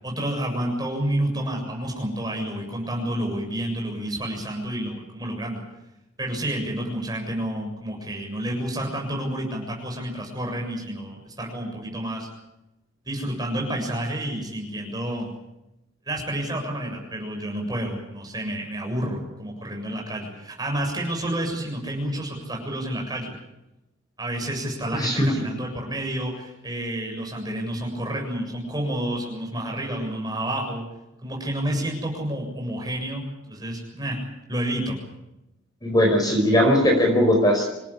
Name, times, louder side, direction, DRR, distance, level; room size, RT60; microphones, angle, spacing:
voice 1, 0.0-5.6 6.2-12.3 13.1-15.3 16.1-23.3 24.2-30.8 31.2-34.2 34.5-35.0, right 1 dB, 20° right, 0 dB, 7.2 m, -29 dB
voice 2, 24.9-25.3 35.8-37.6, equal, 20° left, 2 dB, 4.9 m, -19 dB
26.5 x 17.5 x 8.5 m, 0.92 s
head